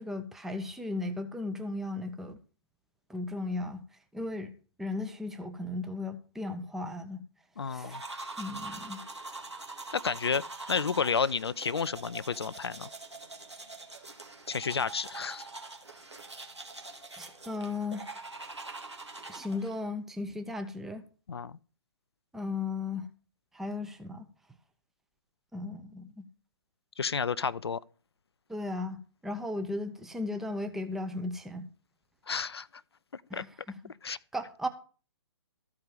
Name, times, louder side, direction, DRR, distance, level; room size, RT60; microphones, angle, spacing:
voice 1, 0.0-2.4 3.1-3.8 4.1-4.5 4.8-7.2 7.7-8.0 8.4-9.0 17.2-18.1 19.3-21.0 22.3-23.1 23.5-24.2 25.5-26.3 28.5-31.7 33.3-33.9 34.3-34.7, left 2 dB, ahead, 0.7 m, -36 dB
voice 2, 7.6-8.0 9.9-10.4 10.7-12.9 14.5-15.5 21.3-21.6 27.0-27.8 32.3-32.7 33.1-33.4 34.0-34.2, left 6 dB, 70° left, 0.5 m, -31 dB
sound 1, 7.8-19.8, right 3 dB, 85° right, 2.1 m, -44 dB
14.0 x 4.9 x 7.3 m
figure-of-eight pair, 130°, 14 cm